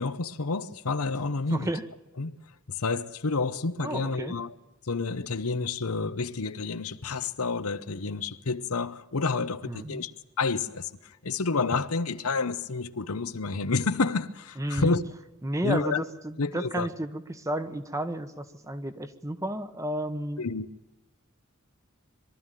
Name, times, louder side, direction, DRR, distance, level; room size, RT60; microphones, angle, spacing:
voice 1, 0.0-1.7 2.2-2.4 2.7-4.5 4.9-10.1 10.4-10.9 11.2-15.0 15.6-16.0 16.4-16.9 20.4-20.7, left 4 dB, 85° left, 0.9 m, -29 dB
voice 2, 1.5-1.8 3.8-4.3 9.6-10.0 14.6-15.0 15.4-20.4, right 1 dB, 15° right, 1.1 m, -32 dB
23.0 x 13.0 x 9.1 m
head